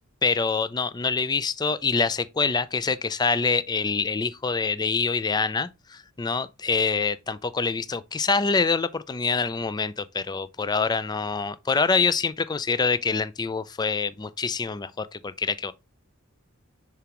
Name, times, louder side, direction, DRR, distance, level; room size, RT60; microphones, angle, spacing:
voice 1, 0.2-15.7, left 4 dB, 20° left, 0.4 m, -25 dB
6.8 x 4.9 x 2.9 m
head